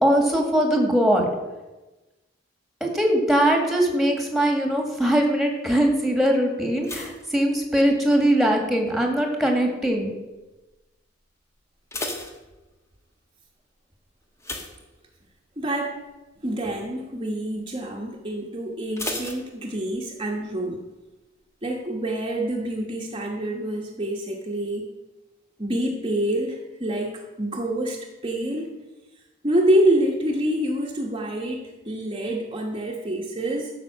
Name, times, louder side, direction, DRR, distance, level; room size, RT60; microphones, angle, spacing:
voice 1, 0.0-1.3 2.8-10.1, right 1 dB, ahead, 2 dB, 1.9 m, -21 dB
sound 1, 6.8-8.3 8.5-9.1 9.7-10.0 10.3-10.4 10.8-10.9 11.6-13.1 14.4-15.5 15.9-16.2 16.5-16.6 19.0-20.2 20.4-20.5, left 2 dB, 15° left, 1.3 m, -35 dB
voice 2, 15.6-16.0 16.4-20.8 21.6-24.9 25.6-28.7 29.4-33.7, right 1 dB, 25° right, -1 dB, 1.2 m, -26 dB
12.5 x 5.7 x 7.3 m, 1.1 s
head